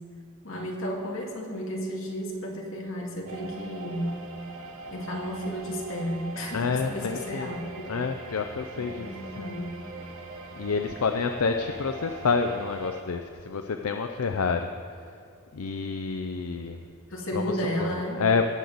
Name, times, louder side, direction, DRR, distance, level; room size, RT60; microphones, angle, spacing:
voice 1, 0.4-4.1 4.9-7.9 8.8-9.7 17.1-18.2, equal, 65° left, -1 dB, 2.2 m, -33 dB
sound 1, 3.3-13.0, right 2 dB, 80° right, 1.1 m, -42 dB
voice 2, 6.5-7.6 7.9-9.1 9.4-9.6 10.6-14.7 15.5-16.8 17.3-17.5 17.8-18.5, left 5 dB, 85° left, 6 dB, 0.5 m, -28 dB
18.5 x 7.7 x 4.0 m, 2.5 s
head